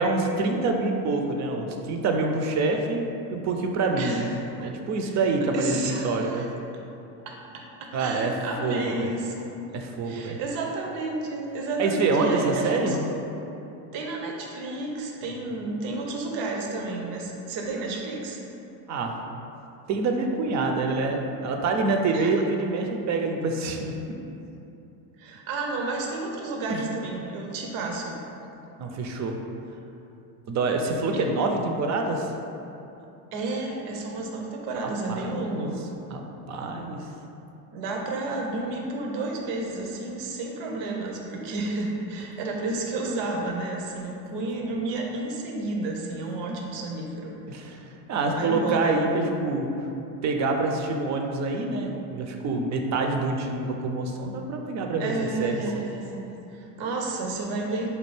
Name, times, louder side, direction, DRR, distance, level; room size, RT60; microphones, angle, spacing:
voice 1, 0.0-4.3 4.6-6.4 7.9-8.3 8.6-9.1 9.7-10.4 11.8-13.0 18.9-19.2 19.9-23.9 26.7-26.8 28.8-29.4 30.5-32.3 35.1-35.7 36.1-36.2 36.5-37.0 46.5-46.6 47.5-49.7 50.2-55.1 55.4-55.6, right 3 dB, 40° right, 3 dB, 0.4 m, -26 dB
voice 2, 4.0-4.7 5.0-5.2 5.5-6.5 6.7-6.8 7.3-9.7 10.0-13.1 13.9-18.4 22.1-22.3 25.2-28.2 31.1-31.3 33.3-35.9 37.7-47.4 48.2-49.0 55.0-57.9, right 2 dB, 75° right, 0 dB, 0.7 m, -31 dB
4.4 x 2.3 x 3.2 m, 2.8 s
supercardioid pair, 85°, 46 cm